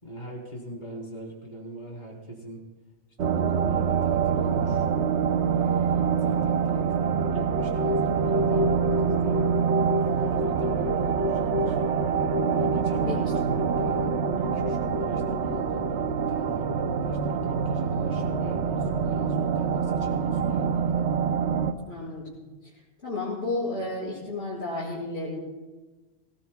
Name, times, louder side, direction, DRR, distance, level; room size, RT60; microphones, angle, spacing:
voice 1, 0.0-2.6 3.2-4.9 5.4-9.5 10.1-11.8 12.5-13.2 13.5-21.0, right 1 dB, 35° left, -2 dB, 4.2 m, -41 dB
sound 1, 3.2-21.7, right 6 dB, 65° right, 1.1 m, -25 dB
voice 2, 21.8-22.4 23.0-25.4, left 2 dB, 55° left, -10 dB, 6.0 m, -32 dB
25.5 x 18.5 x 2.3 m, 1.2 s
omnidirectional pair, 1.3 m